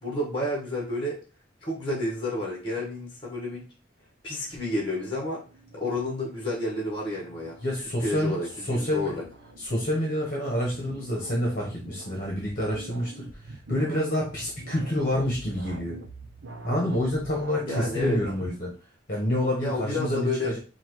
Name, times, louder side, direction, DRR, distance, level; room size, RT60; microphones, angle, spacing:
voice 1, 0.0-1.1 1.6-3.7 4.2-5.4 5.7-7.5 8.0-9.2 17.7-18.2 19.6-20.6, left 1 dB, 25° left, -2 dB, 1.3 m, -30 dB
sound 1, 4.5-18.3, right 2 dB, 80° right, 0.6 m, -45 dB
voice 2, 7.6-8.4 8.6-9.1 9.6-16.0 16.6-18.7 19.1-20.6, left 1 dB, 45° left, -3 dB, 1.1 m, -28 dB
5.5 x 2.4 x 3.1 m, 0.35 s
head